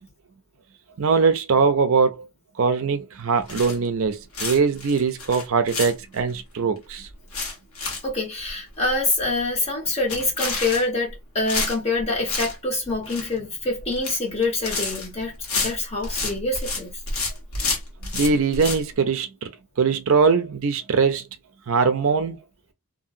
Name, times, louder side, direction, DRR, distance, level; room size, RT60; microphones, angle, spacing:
voice 1, 1.0-2.3 2.6-7.1 18.1-19.5 19.8-21.2 21.7-22.4, right 5 dB, 65° right, 0.5 m, -21 dB
sound 1, 3.5-4.0 4.3-6.3 6.8-6.9 7.1-8.1 8.4-8.5 8.9-9.0 9.2-9.5 10.0-11.1 11.5-12.5 12.8-13.4 13.8-14.2 14.4-16.8 17.1-18.8, left 3 dB, 80° left, 1.2 m, -29 dB
voice 2, 8.0-16.9, left 2 dB, 25° left, 1.3 m, -26 dB
2.7 x 2.7 x 2.6 m
head